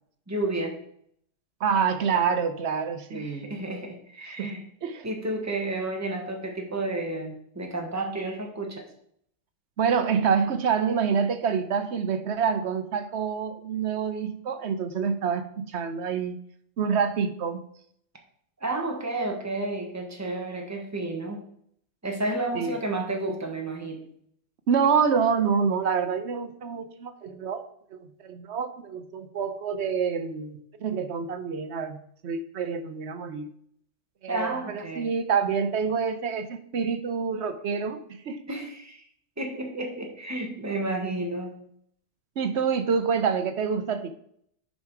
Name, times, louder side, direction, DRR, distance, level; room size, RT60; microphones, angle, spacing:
voice 1, 0.3-0.8 3.1-4.6 5.0-8.8 18.6-21.4 22.0-24.0 34.3-35.1 38.5-39.0 39.4-41.6, right 2 dB, 15° right, 1 dB, 1.3 m, -31 dB
voice 2, 1.6-3.5 4.4-4.5 4.8-5.1 9.8-16.4 16.8-17.6 22.5-22.7 24.7-32.0 32.2-33.5 34.2-38.0 38.3-38.4 42.4-44.1, right 6 dB, 60° right, 10 dB, 1.0 m, -27 dB
9.4 x 5.4 x 4.7 m, 0.68 s
omnidirectional pair, 1.3 m